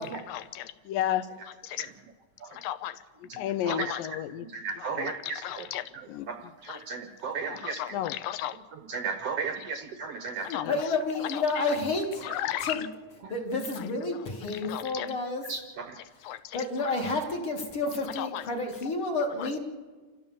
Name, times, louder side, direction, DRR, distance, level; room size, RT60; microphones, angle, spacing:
voice 1, 0.9-1.9 2.5-4.5 4.8-6.3 6.7-6.8 7.4-8.6 10.4-10.8 11.2-11.8 12.2-12.9 13.8-13.9 14.5-15.1 16.2-16.9 18.1-18.4 19.4-19.5, left 12 dB, 80° left, 13 dB, 2.5 m, -34 dB
voice 2, 3.3-3.9 4.5-5.7 5.9-8.0 8.7-10.8 12.3-12.4 13.2-13.3 15.5-16.0, right 5 dB, 70° right, 7 dB, 1.5 m, -36 dB
voice 3, 10.7-12.3 12.6-12.9 13.3-15.4 16.5-19.6, left 3 dB, 45° left, 2 dB, 2.6 m, -30 dB
27.5 x 14.0 x 7.1 m, 1.4 s
omnidirectional pair, 4.0 m